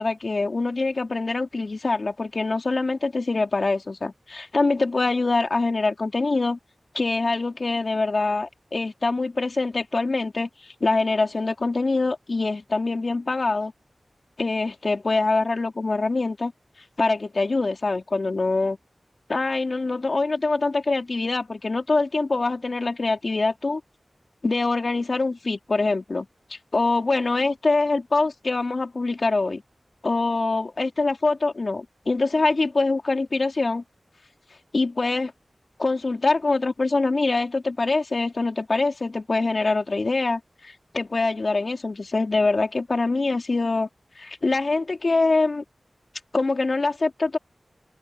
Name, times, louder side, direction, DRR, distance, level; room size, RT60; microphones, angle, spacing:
voice 1, 0.0-6.6 6.9-13.7 14.4-16.5 17.0-18.8 19.3-23.8 24.4-29.6 30.0-33.8 34.7-35.3 35.8-43.9 44.2-45.6 46.3-47.4, left 3 dB, 65° left, 3.7 m, -24 dB
cardioid pair, 45°, 0 cm